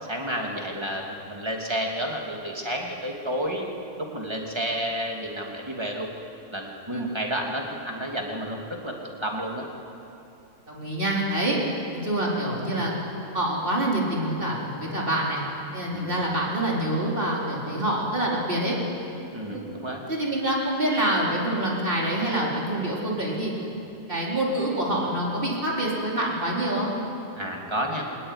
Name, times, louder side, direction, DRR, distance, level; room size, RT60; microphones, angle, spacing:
voice 1, 0.0-3.7 4.0-6.1 6.5-9.0 9.2-9.6 15.9-16.2 19.3-20.0 27.4-28.1, equal, 15° right, 0 dB, 2.8 m, -31 dB
voice 2, 10.7-11.6 11.9-12.9 13.3-15.4 15.7-18.8 19.5-19.6 20.1-23.5 24.1-26.9, right 1 dB, 30° right, -3 dB, 4.4 m, -26 dB
22.5 x 19.0 x 9.9 m, 2.9 s
omnidirectional pair, 1.8 m